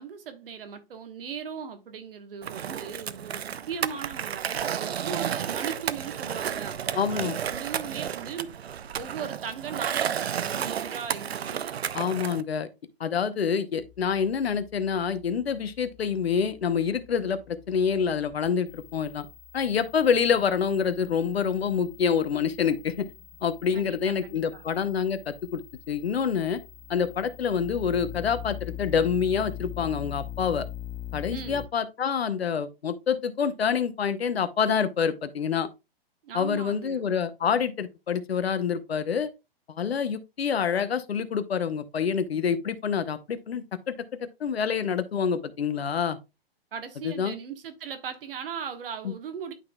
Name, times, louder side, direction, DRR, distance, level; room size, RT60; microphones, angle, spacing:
voice 1, 0.0-8.7 8.9-11.6 23.7-24.6 31.3-31.7 36.2-37.1 46.7-49.5, right 7 dB, 65° right, 1.3 m, -38 dB
Skateboard, 2.4-12.4, right 8 dB, 85° right, 0.6 m, -32 dB
voice 2, 6.9-7.4 11.9-12.7 13.0-19.3 19.5-23.1 23.4-26.6 26.9-30.7 31.1-35.7 36.3-39.3 39.7-43.9 44.4-46.2 47.0-47.4 49.0-49.1, left 7 dB, 80° left, 0.8 m, -27 dB
sound 1, 13.8-31.7, left 12 dB, 10° left, 0.5 m, -43 dB
11.0 x 3.8 x 2.3 m
hypercardioid pair, 120°, 31 cm